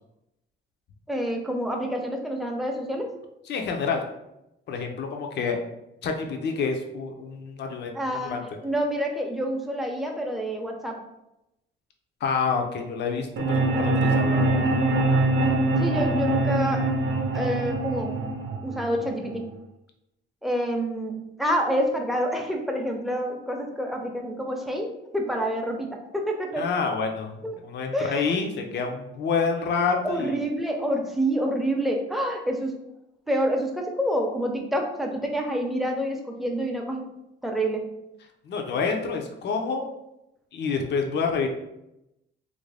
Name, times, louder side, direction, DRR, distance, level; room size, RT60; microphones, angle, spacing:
voice 1, 1.1-3.1 7.9-11.0 15.6-16.8 17.3-18.2 18.6-19.5 20.4-26.7 27.4-27.5 27.9-28.3 30.0-32.7 33.3-37.1 37.4-37.9, equal, ahead, 2 dB, 0.6 m, -28 dB
voice 2, 3.5-4.0 4.7-5.6 6.0-7.9 8.2-8.4 12.2-14.6 26.6-30.4 38.5-39.9 40.5-41.5, left 5 dB, 60° left, 3 dB, 0.6 m, -28 dB
sound 1, 13.4-19.4, right 2 dB, 70° right, 0.7 m, -24 dB
3.1 x 2.6 x 3.3 m, 0.87 s
cardioid pair, 90°, 20 cm